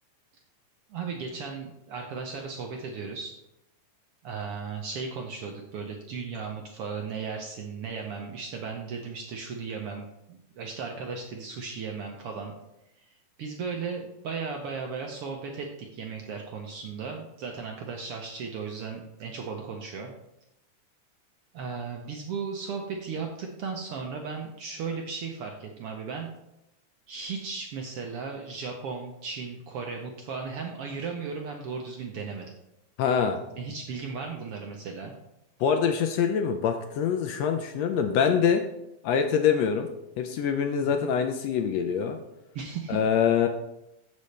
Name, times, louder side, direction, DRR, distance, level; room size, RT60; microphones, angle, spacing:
voice 1, 0.9-3.4 4.2-12.5 13.0-20.1 21.5-26.3 27.1-32.5 33.6-35.1 40.8-41.1 42.5-43.0, right 5 dB, 80° right, 2 dB, 1.3 m, -36 dB
voice 2, 33.0-33.4 35.6-38.6 39.0-39.9 40.2-42.2 42.9-43.5, left 7 dB, 80° left, 6 dB, 1.5 m, -24 dB
15.0 x 5.5 x 3.2 m, 0.89 s
omnidirectional pair, 3.6 m